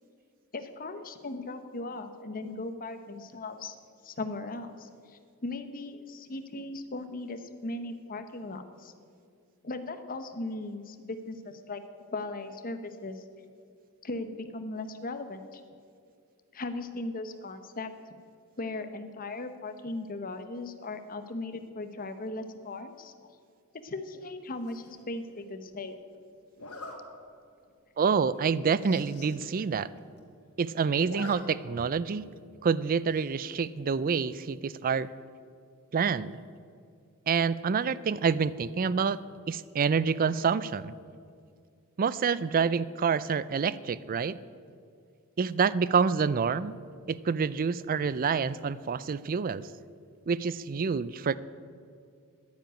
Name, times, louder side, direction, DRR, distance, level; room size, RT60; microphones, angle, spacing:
voice 1, 0.5-3.8 4.0-8.9 9.6-11.8 12.1-13.2 14.0-15.6 16.5-17.9 18.6-23.1 23.8-26.0, left 2 dB, 40° left, 9 dB, 0.9 m, -38 dB
Zipper (clothing), 24.6-25.0 26.6-27.0 27.5-27.7 28.0-28.1 28.4-28.5 28.7-29.3 29.7-29.8 30.0-30.5 30.8-31.4 31.7-31.8 33.1-33.5, left 2 dB, 75° left, 2.2 m, -45 dB
voice 2, 28.0-29.9 30.6-32.2 32.6-35.1 35.9-36.4 37.3-39.2 39.5-40.9 42.0-44.4 45.4-46.8 47.1-49.7 50.3-51.4, right 5 dB, 40° right, 18 dB, 0.4 m, -27 dB
10.5 x 9.9 x 9.0 m, 2.2 s
head